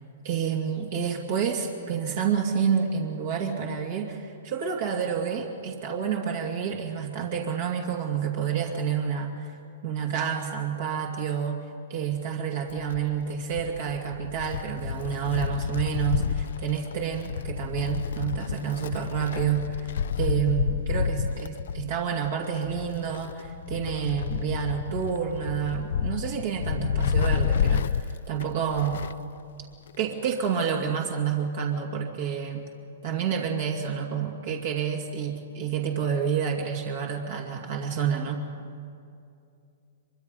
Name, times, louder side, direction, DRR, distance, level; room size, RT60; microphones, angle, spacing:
voice 1, 0.2-9.5 9.8-11.6 11.9-19.9 20.2-29.0 30.0-32.7 33.0-38.4, right 7 dB, 60° right, 0 dB, 2.3 m, -29 dB
Wind, 12.7-29.3 29.6-29.7 30.7-30.8, left 7 dB, 70° left, 0.5 m, -30 dB
23.5 x 23.0 x 5.3 m, 2.5 s
hypercardioid pair, 130°, 0 cm